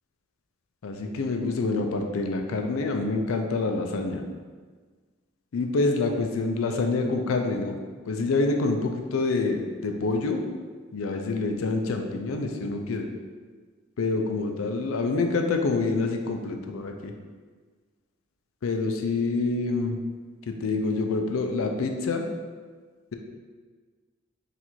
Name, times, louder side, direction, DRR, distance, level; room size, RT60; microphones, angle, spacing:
voice 1, 0.8-4.2 5.5-7.8 8.1-10.4 10.9-13.1 14.0-17.1 18.6-20.0 20.5-22.2, left 3 dB, 80° left, 4 dB, 0.4 m, -27 dB
4.1 x 2.5 x 4.4 m, 1.5 s
head